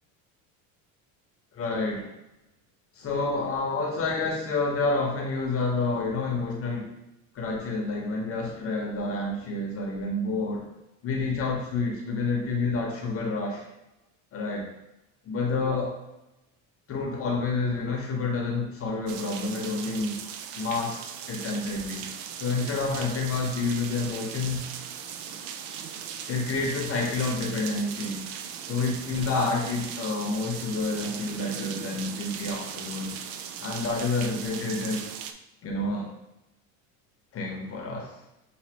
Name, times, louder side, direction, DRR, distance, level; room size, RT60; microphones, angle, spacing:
voice 1, 1.5-2.1 2.9-6.9 7.3-10.6 11.0-13.7 14.3-14.7 15.2-15.9 16.9-20.2 20.6-22.1 22.4-24.7 26.3-28.2 28.7-33.1 33.6-35.1 35.6-36.1 37.3-38.2, left 3 dB, 40° left, 0 dB, 0.9 m, -29 dB
sound 1, 19.1-35.3, right 8 dB, 70° right, 0.5 m, -38 dB
5.9 x 2.8 x 2.9 m, 0.93 s
cardioid pair, 130°, 36 cm